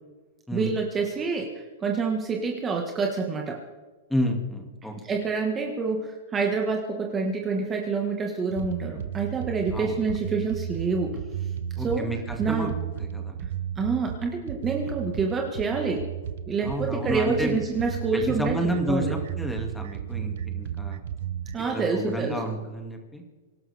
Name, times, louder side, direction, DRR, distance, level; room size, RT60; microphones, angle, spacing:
voice 1, 0.5-1.5 1.8-3.6 5.0-11.2 11.8-12.1 12.4-12.7 13.4-13.5 13.8-16.1 16.5-18.6 18.9-19.1 21.5-22.3, right 4 dB, 20° right, 1 dB, 1.7 m, -27 dB
voice 2, 4.1-4.9 9.7-10.1 11.8-12.7 13.0-13.4 16.6-17.6 18.1-21.0 21.7-23.2, equal, 5° left, 3 dB, 2.4 m, -30 dB
sound 1, 8.5-21.6, right 9 dB, 65° right, 0.8 m, -34 dB
25.0 x 12.0 x 3.6 m, 1.3 s
hypercardioid pair, 140°, 0 cm